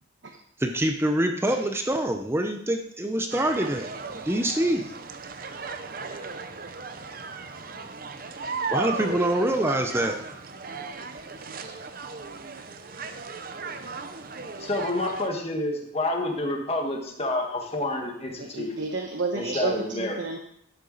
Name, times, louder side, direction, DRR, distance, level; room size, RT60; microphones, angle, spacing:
voice 1, 0.6-4.9 8.7-10.2, right 1 dB, 10° right, 4 dB, 0.7 m, -25 dB
sound 1, 3.3-15.3, right 4 dB, 45° right, 0.7 m, -36 dB
voice 2, 14.6-18.8 19.3-20.2, left 2 dB, 30° left, 1 dB, 1.7 m, -29 dB
voice 3, 18.4-20.4, right 3 dB, 70° right, 2 dB, 1.0 m, -31 dB
12.0 x 8.1 x 4.1 m, 0.73 s
head